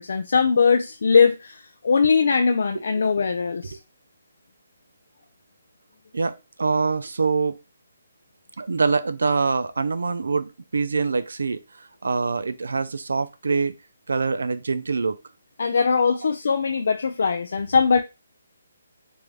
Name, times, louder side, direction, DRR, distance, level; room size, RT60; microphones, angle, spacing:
voice 1, 0.0-3.8 15.6-18.0, left 5 dB, 50° left, 0.3 m, -20 dB
voice 2, 6.1-7.6 8.6-13.7 14.1-15.2, right 4 dB, 85° right, 0.5 m, -24 dB
3.5 x 2.6 x 3.1 m
hypercardioid pair, 180°, 0 cm